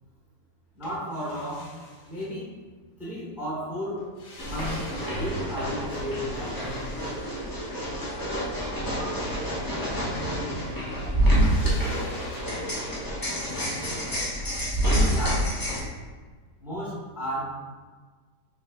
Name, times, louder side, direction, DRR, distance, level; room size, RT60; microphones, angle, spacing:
voice 1, 0.7-1.8 2.1-2.5 3.0-4.1 4.4-4.8 5.2-6.6 15.0-15.6 16.6-17.6, equal, ahead, -7 dB, 0.8 m, -33 dB
sound 1, 0.8-2.9 4.0-8.2 11.2-16.2 16.5-16.6, left 2 dB, 65° left, 1.0 m, -49 dB
sound 2, 4.4-15.8, right 1 dB, 30° left, 0.3 m, -27 dB
voice 2, 9.7-11.0 11.4-12.8 13.3-14.4, left 2 dB, 80° left, -1 dB, 1.2 m, -42 dB
4.3 x 3.4 x 2.3 m, 1.4 s
omnidirectional pair, 1.7 m